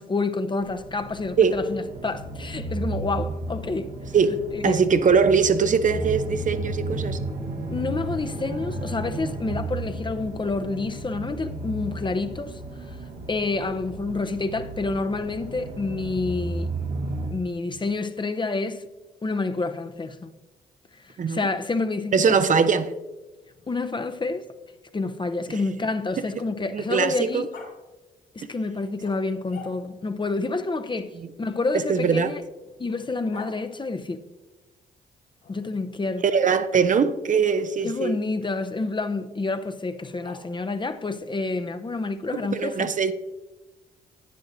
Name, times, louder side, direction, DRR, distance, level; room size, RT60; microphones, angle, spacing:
voice 1, 0.0-4.0 4.6-4.8 7.7-12.6 12.9-13.0 13.3-16.7 17.3-18.9 19.2-20.3 21.0-22.4 23.7-24.5 24.9-27.5 28.3-32.4 32.8-34.2 35.5-36.2 37.8-42.9, left 3 dB, 25° left, 0.6 m, -28 dB
sound 1, 0.6-17.3, right 2 dB, 75° right, 1.4 m, -33 dB
voice 2, 4.6-7.2 21.2-21.4 22.1-22.9 25.5-25.6 26.7-27.4 28.4-28.5 31.2-31.3 31.9-32.3 36.2-38.2 42.3-43.1, right 6 dB, 45° right, 0.6 m, -21 dB
Growling, 23.4-26.8 27.5-27.7 29.0-30.1 31.4-33.6 35.4-36.1 37.4-37.6 39.9-40.8, left 5 dB, 70° left, 2.7 m, -48 dB
11.0 x 9.4 x 2.7 m
hypercardioid pair, 45°, 19 cm